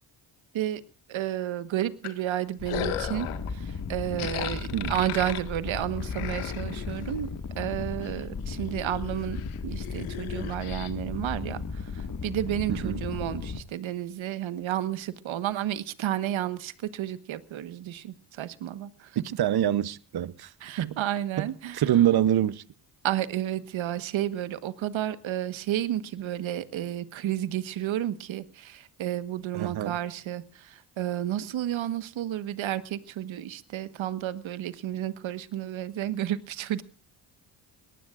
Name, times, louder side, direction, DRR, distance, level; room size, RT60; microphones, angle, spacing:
voice 1, 1.1-7.3 7.6-19.2 20.6-21.8 23.0-36.8, right 12 dB, 70° right, 1.4 m, -31 dB
sound 1, 2.0-3.5 4.2-7.2 7.7-8.1 8.4-10.9, left 11 dB, 90° left, 1.8 m, -37 dB
sound 2, 2.6-13.6, left 5 dB, 40° left, 1.9 m, -36 dB
voice 2, 19.4-20.5 20.8-21.0 21.4-21.5 21.7-22.6 29.5-30.0, right 11 dB, 50° right, 0.9 m, -25 dB
23.0 x 19.0 x 2.5 m
supercardioid pair, 60°, 48 cm